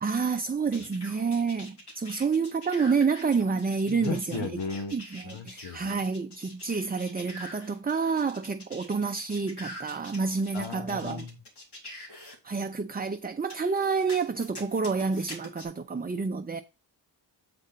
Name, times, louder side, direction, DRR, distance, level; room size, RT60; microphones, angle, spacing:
voice 1, 0.0-4.5 4.9-11.3 12.4-16.6, right 5 dB, 20° right, 0.5 m, -29 dB
sound 1, 0.7-12.4 13.5-15.7, left 1 dB, 60° left, 3.0 m, -45 dB
voice 2, 3.9-5.0 5.2-5.9 10.5-11.4, left 4 dB, 85° left, 1.3 m, -36 dB
7.7 x 4.9 x 4.1 m
cardioid pair, 70°, 44 cm